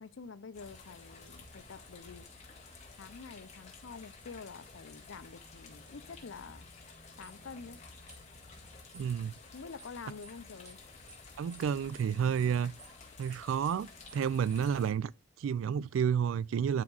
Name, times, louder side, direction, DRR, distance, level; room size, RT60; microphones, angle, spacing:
voice 1, 0.0-2.2 3.0-6.7 7.2-7.8 9.5-10.8, left 5 dB, 80° left, 0.5 m, -47 dB
sound 1, 0.5-14.9, left 3 dB, 35° left, 1.7 m, -52 dB
sound 2, 7.2-7.4 8.1-8.2 8.9-9.1 9.8-10.0 10.2-10.4 10.6-10.8 11.1-11.2 11.5-11.7 11.9-12.1 12.4-12.5 12.8-13.0 13.2-13.4 13.6-13.8 14.1-14.2 14.5-14.7, right 4 dB, 15° right, 1.1 m, -55 dB
voice 2, 8.9-9.3 11.4-12.7 13.2-15.1 15.4-16.8, right 7 dB, 85° right, 0.3 m, -30 dB
11.0 x 4.8 x 2.4 m
head